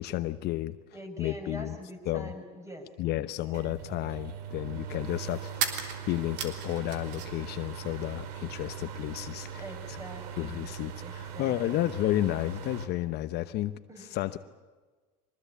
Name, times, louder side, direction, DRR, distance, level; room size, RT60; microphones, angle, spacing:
voice 1, 0.0-0.8 1.2-1.8 2.1-2.3 3.0-9.6 9.9-10.0 10.4-14.4, left 14 dB, 55° left, 11 dB, 1.0 m, -32 dB
voice 2, 0.9-2.9 3.3-3.6 9.5-10.7 11.0-11.9 13.9-14.1, equal, 15° right, 4 dB, 6.5 m, -44 dB
sound 1, 3.3-3.4 5.5-7.5 7.8-8.6, right 7 dB, 65° right, 3.3 m, -36 dB
sound 2, 3.5-12.9, right 8 dB, 80° right, 2.6 m, -41 dB
23.5 x 20.0 x 8.5 m, 1.3 s
supercardioid pair, 95°, 20 cm